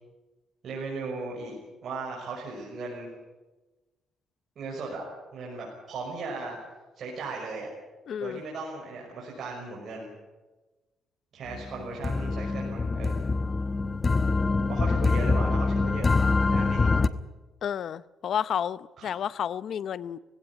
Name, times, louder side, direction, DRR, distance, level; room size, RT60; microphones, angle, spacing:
voice 1, 0.6-3.1 4.6-5.0 5.3-6.6 7.0-7.7 8.2-10.1 11.3-13.2 14.7-16.1 16.4-16.9 19.0-19.1, right 3 dB, 60° right, -3 dB, 5.8 m, -37 dB
voice 2, 8.1-8.4 17.6-20.2, left 8 dB, 65° left, 18 dB, 0.7 m, -31 dB
sound 1, 11.5-17.1, left 3 dB, 30° left, 1.0 m, -25 dB
19.0 x 17.0 x 10.0 m, 1.2 s
cardioid pair, 90°, 0 cm